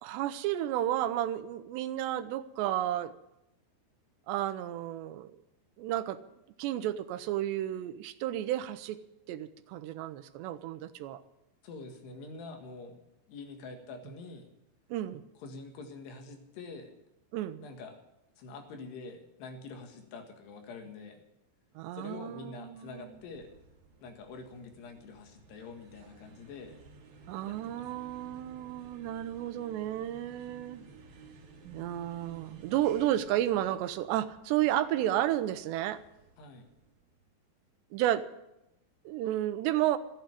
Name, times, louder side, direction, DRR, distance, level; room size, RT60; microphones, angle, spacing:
voice 1, 0.0-3.1 4.3-5.3 5.8-6.2 6.6-9.0 9.3-11.2 14.9-15.2 17.3-17.6 21.8-23.0 27.3-30.9 31.6-36.0 37.9-38.3 39.1-40.0, right 13 dB, 85° right, 12 dB, 3.0 m, -32 dB
voice 2, 11.6-13.0 13.3-14.5 15.4-17.0 17.6-18.0 18.4-21.2 21.9-23.5 24.0-26.8 27.5-28.2 36.4-36.7, left 3 dB, 75° left, 4 dB, 3.8 m, -46 dB
sound 1, 22.7-37.2, right 4 dB, 65° right, 4.1 m, -56 dB
14.5 x 9.0 x 9.8 m, 0.88 s
omnidirectional pair, 5.0 m